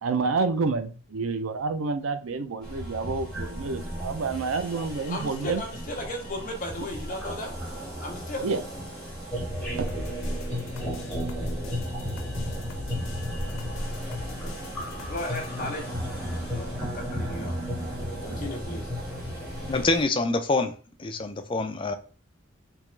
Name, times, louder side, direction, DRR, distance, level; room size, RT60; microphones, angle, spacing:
voice 1, 0.0-5.6 8.4-8.6, right 4 dB, 85° right, 0.5 m, -28 dB
sound 1, 2.6-20.0, equal, 5° left, 1.5 m, -34 dB
voice 2, 5.1-7.6 8.0-8.4 15.0-17.6 18.2-18.9, left 1 dB, 40° left, 0.8 m, -36 dB
sound 2, 9.9-15.5, left 3 dB, 85° left, 0.6 m, -43 dB
voice 3, 19.7-20.7 21.0-21.9, left 3 dB, 25° left, 0.4 m, -25 dB
3.5 x 2.9 x 3.2 m
head